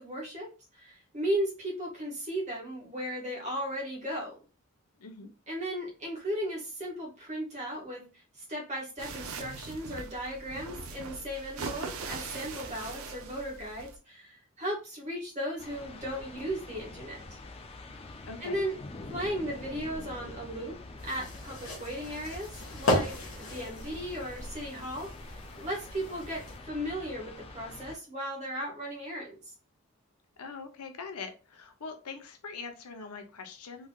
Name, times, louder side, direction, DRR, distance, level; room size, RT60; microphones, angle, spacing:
voice 1, 0.0-4.4 5.5-17.4 18.4-18.8 19.1-20.8 21.0-29.5, equal, 30° right, -3 dB, 1.5 m, -36 dB
voice 2, 5.0-5.3 18.2-18.6 30.4-33.9, left 4 dB, 90° left, 7 dB, 0.7 m, -42 dB
sound 1, 9.0-14.0, right 4 dB, 70° right, 0.6 m, -41 dB
sound 2, 15.6-28.0, left 2 dB, 25° left, 0.4 m, -46 dB
sound 3, 21.0-26.6, left 1 dB, 65° left, 1.2 m, -35 dB
3.7 x 3.2 x 2.3 m, 0.32 s
head